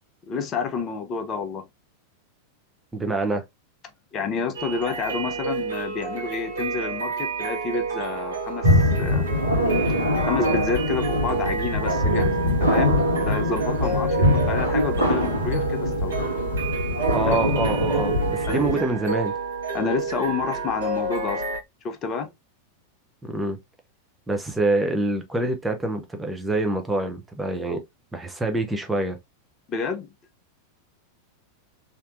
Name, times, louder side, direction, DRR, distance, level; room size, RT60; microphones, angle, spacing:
voice 1, 0.2-1.7 4.1-9.3 10.2-14.2 14.5-16.2 17.2-17.4 18.5-18.7 19.7-21.4 21.8-22.3 29.7-30.1, left 5 dB, 30° left, 0.7 m, -29 dB
voice 2, 2.9-3.4 17.1-19.3 23.2-23.6 24.3-27.8 28.1-29.2, right 2 dB, 10° right, 0.7 m, -26 dB
sound 1, 4.5-21.6, right 4 dB, 65° right, 1.2 m, -30 dB
sound 2, 8.6-18.8, equal, 85° right, 1.5 m, -23 dB
3.3 x 2.8 x 2.5 m
figure-of-eight pair, 90°, 0 cm